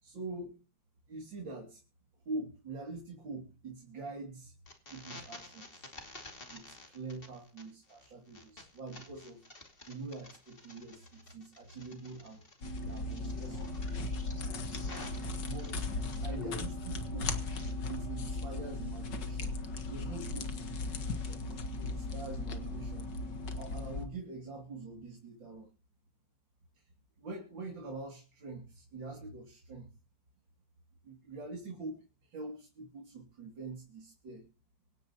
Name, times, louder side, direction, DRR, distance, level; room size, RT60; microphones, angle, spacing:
voice 1, 0.0-0.6 1.1-1.8 2.3-4.5 4.9-5.9 6.5-9.4 9.9-12.4 12.8-13.8 15.4-15.9 16.2-17.3 17.9-19.5 19.9-20.8 21.3-23.1 23.6-25.7 26.7-26.8 27.2-29.9 31.0-34.5, right 3 dB, 85° right, 1 dB, 3.5 m, -44 dB
sound 1, 4.7-16.6 16.8-17.7, left 2 dB, 30° left, 2.6 m, -52 dB
sound 2, 12.6-24.1, left 2 dB, 70° left, 2.1 m, -37 dB
25.5 x 10.5 x 2.9 m, 0.33 s
omnidirectional pair, 2.0 m